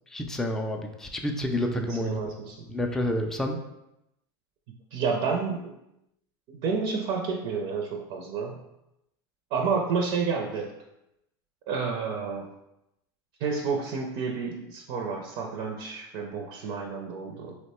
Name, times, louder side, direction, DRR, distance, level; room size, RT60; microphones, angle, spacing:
voice 1, 0.1-2.3 2.7-3.6, left 1 dB, 5° left, 3 dB, 0.3 m, -29 dB
voice 2, 1.7-2.6 4.9-5.7 6.5-8.6 9.5-10.7 11.7-12.5 13.4-17.6, right 5 dB, 60° right, 1 dB, 0.5 m, -30 dB
2.9 x 2.1 x 4.1 m, 0.86 s
supercardioid pair, 115°, 12 cm